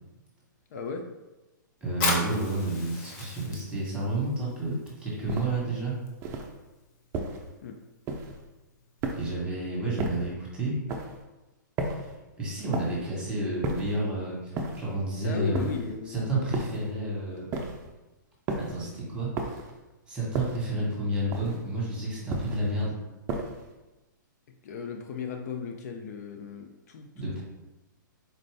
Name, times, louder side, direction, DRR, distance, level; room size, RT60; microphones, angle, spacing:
voice 1, 0.7-1.1 7.6-7.8 15.2-16.7 24.6-27.1, left 5 dB, 55° left, 3 dB, 0.4 m, -36 dB
voice 2, 1.8-6.0 9.1-10.8 11.9-12.1 12.4-15.6 16.1-17.5 18.6-19.5 20.1-22.9 27.1-27.4, right 2 dB, 10° right, -5 dB, 1.3 m, -30 dB
Fire, 1.9-9.1, left 3 dB, 35° left, 0.9 m, -37 dB
sound 1, 5.3-5.7 6.2-6.6 7.1-7.5 8.1-8.5 9.0-9.5 10.0-10.4 10.9-11.2 11.8-12.2 12.7-13.1 13.6-14.0 14.6-15.0 15.5-16.0 16.5-16.9 17.5-17.9 18.5-18.8 19.4-19.8 20.3-20.7 21.3-21.7 22.3-22.7 23.3-23.7, right 2 dB, 25° right, 0.4 m, -34 dB
4.3 x 2.5 x 3.3 m, 1.1 s
hypercardioid pair, 130°, 11 cm